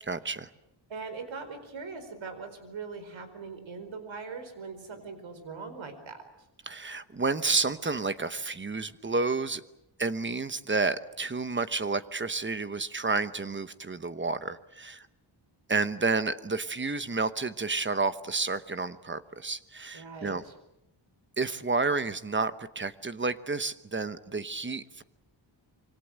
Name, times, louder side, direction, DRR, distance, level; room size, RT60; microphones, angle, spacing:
voice 1, 0.1-0.5 6.7-9.6 10.0-15.1 15.7-20.4 21.4-25.0, right 3 dB, 25° right, 12 dB, 1.0 m, -30 dB
voice 2, 0.9-6.2 19.9-20.5, right 4 dB, 85° right, 9 dB, 4.7 m, -41 dB
26.5 x 25.0 x 7.8 m, 0.85 s
wide cardioid pair, 170°, 45 cm